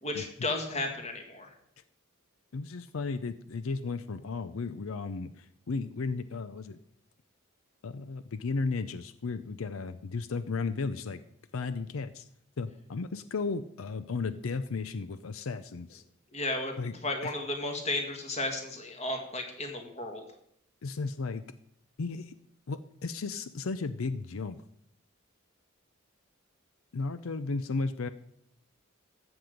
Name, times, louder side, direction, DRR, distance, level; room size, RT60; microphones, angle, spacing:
voice 1, 0.0-1.5 16.3-16.7 17.0-20.2, left 2 dB, 30° left, 4 dB, 1.9 m, -33 dB
voice 2, 2.5-6.8 7.8-11.2 11.5-12.3 12.6-16.0 16.8-16.9 17.2-17.3 20.8-21.4 22.0-22.3 22.7-24.6 26.9-28.1, left 4 dB, 85° left, 13 dB, 0.5 m, -34 dB
13.5 x 7.9 x 5.2 m, 0.72 s
head